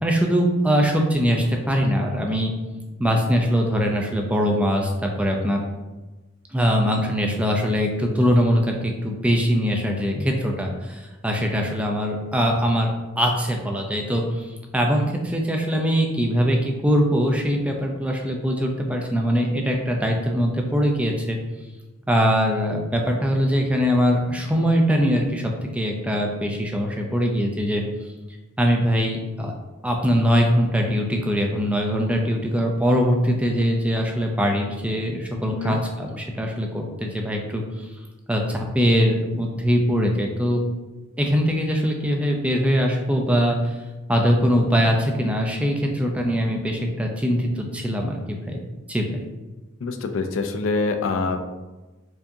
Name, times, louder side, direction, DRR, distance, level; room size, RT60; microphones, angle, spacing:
voice 1, 0.0-2.5 3.0-5.6 6.5-14.5 14.7-21.4 22.1-27.8 28.6-29.5 29.8-37.6 38.3-40.6 41.2-43.6 44.1-48.6 48.9-49.2, equal, 5° right, 1 dB, 0.4 m, -22 dB
voice 2, 35.5-35.8 49.8-51.4, left 3 dB, 65° left, 6 dB, 0.4 m, -25 dB
4.6 x 2.7 x 2.6 m, 1.1 s
head